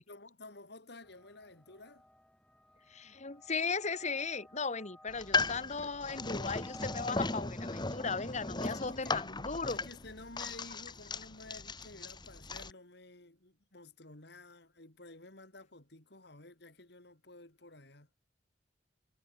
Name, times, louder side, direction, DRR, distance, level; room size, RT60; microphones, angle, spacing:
voice 1, 0.0-2.1 8.6-9.2 9.7-18.1, left 2 dB, 65° left, 3.8 m, -52 dB
sound 1, 1.0-7.2, left 1 dB, 5° left, 7.8 m, -56 dB
voice 2, 2.9-9.8, left 4 dB, 40° left, 2.0 m, -37 dB
sound 2, 5.1-12.7, left 3 dB, 25° left, 2.0 m, -37 dB
head